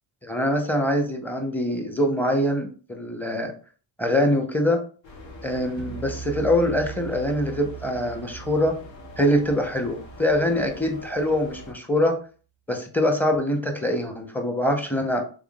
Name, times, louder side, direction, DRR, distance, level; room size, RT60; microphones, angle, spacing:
voice 1, 0.2-3.5 4.0-4.8 5.4-8.8 9.2-12.2 12.7-15.2, left 1 dB, 5° left, 4 dB, 0.9 m, -24 dB
sound 1, 5.0-11.7, left 2 dB, 60° left, 1.4 m, -43 dB
sound 2, 5.8-11.1, right 9 dB, 25° right, 0.5 m, -41 dB
3.6 x 3.6 x 2.4 m, 0.38 s
supercardioid pair, 75°, 49 cm